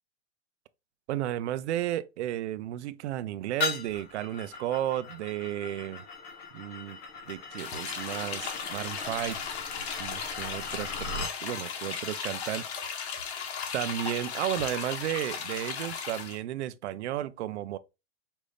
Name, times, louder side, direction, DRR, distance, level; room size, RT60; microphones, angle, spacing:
voice 1, 1.1-6.0 6.5-7.0 7.3-9.4 10.0-12.6 13.7-17.8, right 12 dB, 75° right, 0.6 m, -33 dB
sound 1, 3.6-11.4, left 4 dB, 20° left, 0.5 m, -39 dB
sound 2, 7.6-16.4, left 6 dB, 70° left, 1.2 m, -36 dB
5.2 x 2.6 x 3.3 m
supercardioid pair, 170°, 34 cm